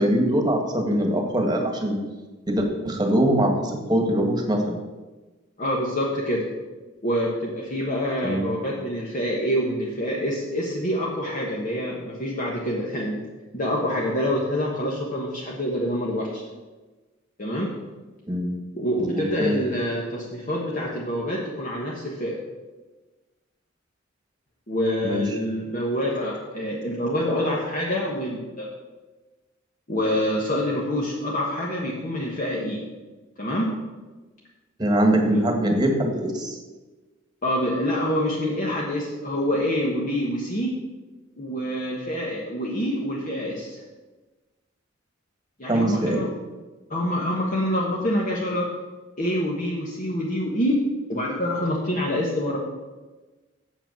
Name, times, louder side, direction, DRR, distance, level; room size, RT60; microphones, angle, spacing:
voice 1, 0.0-2.0 2.5-4.8 8.2-8.5 18.3-18.6 19.0-19.6 25.0-25.2 34.8-36.6 45.7-46.2, right 1 dB, 20° right, 3 dB, 1.5 m, -22 dB
voice 2, 5.6-6.5 7.0-13.2 13.5-16.4 17.4-17.7 18.7-22.4 24.7-28.7 29.9-32.8 33.4-33.7 37.4-40.7 41.4-43.8 45.6-46.3 46.9-48.7 49.2-50.8 51.1-52.6, equal, 40° left, -4 dB, 1.3 m, -26 dB
8.0 x 7.4 x 6.2 m, 1.2 s
head